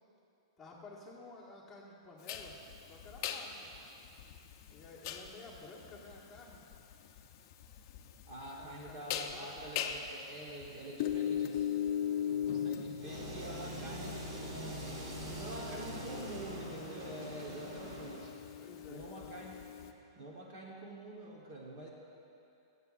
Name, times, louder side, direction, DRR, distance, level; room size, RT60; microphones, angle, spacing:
voice 1, 0.6-2.5 2.8-3.7 4.7-6.6 8.6-9.6 15.3-16.4 18.5-19.3, left 3 dB, 5° left, -7 dB, 1.5 m, -52 dB
sound 1, 2.3-19.9, left 9 dB, 40° left, 0.6 m, -40 dB
voice 2, 8.3-14.3 15.2-18.3 18.9-19.6 20.1-21.9, right 1 dB, 35° right, -2 dB, 1.1 m, -47 dB
sound 2, 13.0-18.3, right 1 dB, 50° right, 1.9 m, -43 dB
22.0 x 8.1 x 2.5 m, 2.7 s
supercardioid pair, 165°, 3 cm